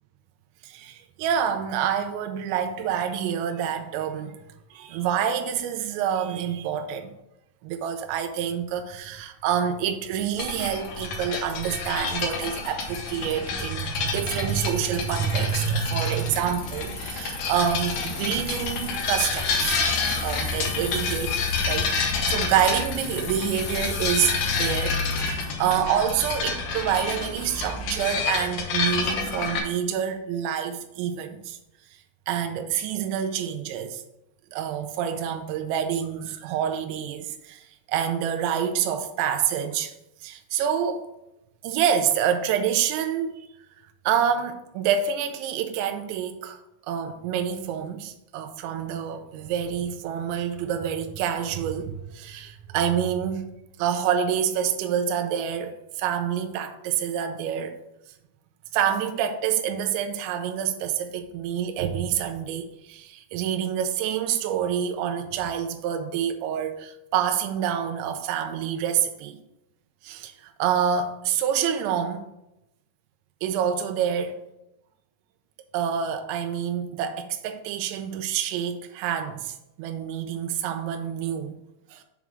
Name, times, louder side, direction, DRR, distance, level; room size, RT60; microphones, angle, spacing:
voice 1, 0.6-4.4 4.7-7.1 7.6-19.8 20.2-31.6 32.3-34.0 34.5-39.9 40.2-41.1 41.6-43.5 44.1-46.6 46.9-53.4 53.8-57.8 58.7-69.4 70.0-72.2 73.4-74.4 75.7-81.6 81.9-82.0, right 8 dB, 80° right, 2.9 m, -27 dB
Bicycle, 9.9-10.0 10.8-10.9 11.1-13.3 13.6-25.5, left 4 dB, 65° left, 1.7 m, -39 dB
sound 1, 10.4-29.6, left 4 dB, 85° left, 1.8 m, -29 dB
7.3 x 3.6 x 6.1 m
omnidirectional pair, 5.5 m